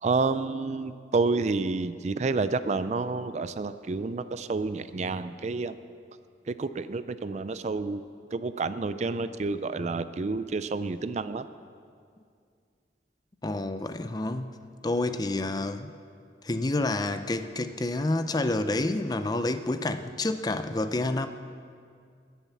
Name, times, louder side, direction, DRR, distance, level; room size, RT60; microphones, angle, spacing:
voice 1, 0.0-5.8 6.5-8.0 8.3-11.5, right 3 dB, 40° right, 13 dB, 0.4 m, -29 dB
voice 2, 13.4-14.6 14.8-15.9 16.4-21.3, left 2 dB, 20° left, 10 dB, 0.5 m, -28 dB
21.5 x 7.2 x 7.1 m, 2.2 s
head